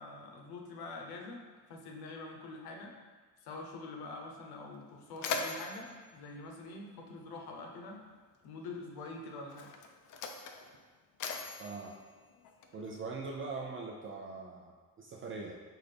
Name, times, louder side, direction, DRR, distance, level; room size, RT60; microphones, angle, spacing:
voice 1, 0.0-1.4 1.7-2.9 3.4-8.0 8.4-9.7, left 3 dB, 85° left, 1 dB, 0.8 m, -45 dB
Mechanisms, 4.2-4.3 4.7-7.4 8.4-8.6 9.4-13.0, left 5 dB, 55° left, 0.5 m, -42 dB
voice 2, 11.6-12.0 12.7-15.5, right 4 dB, 35° right, -1 dB, 0.4 m, -42 dB
5.8 x 2.5 x 3.3 m, 1.5 s
cardioid pair, 145°, 36 cm